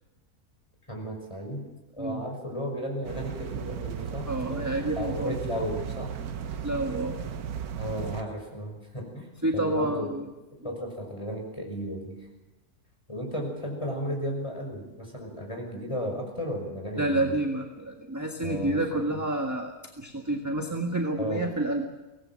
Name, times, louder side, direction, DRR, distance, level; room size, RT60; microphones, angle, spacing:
voice 1, 0.9-1.6 1.9-6.1 7.8-9.3 9.5-10.1 10.6-12.2 13.1-17.4 18.4-18.8 19.1-19.2 21.1-21.5, equal, 20° left, 1 dB, 6.0 m, -34 dB
sound 1, 3.0-8.2, right 7 dB, 85° right, 1.5 m, -35 dB
voice 2, 4.3-5.3 6.6-7.2 9.4-10.3 17.0-21.9, right 1 dB, 10° right, 2 dB, 1.6 m, -29 dB
24.0 x 18.5 x 7.7 m, 1.1 s
omnidirectional pair, 1.6 m